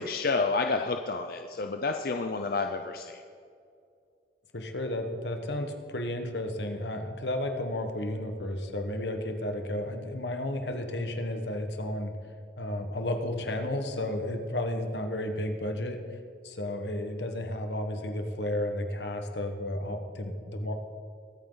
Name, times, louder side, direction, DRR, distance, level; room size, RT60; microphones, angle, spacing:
voice 1, 0.0-3.2, left 3 dB, 55° left, 5 dB, 0.6 m, -29 dB
voice 2, 4.5-12.1 12.6-16.2 16.4-20.7, left 1 dB, 80° left, 5 dB, 1.4 m, -32 dB
22.0 x 9.2 x 4.0 m, 2.4 s
head